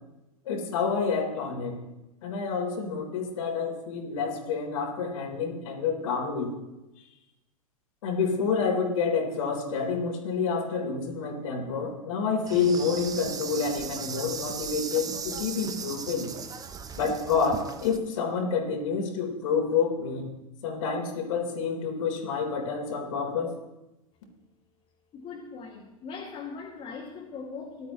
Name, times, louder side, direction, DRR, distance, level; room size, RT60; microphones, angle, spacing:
voice 1, 0.4-1.8 2.2-6.5 8.0-16.3 17.0-20.3 20.6-23.5, left 5 dB, 60° left, 1 dB, 4.0 m, -28 dB
Insect, 12.5-18.0, right 6 dB, 20° right, 0.9 m, -37 dB
voice 2, 25.1-27.9, left 5 dB, 30° left, -3 dB, 2.3 m, -40 dB
19.0 x 12.5 x 3.2 m, 0.98 s
figure-of-eight pair, 95°, 19 cm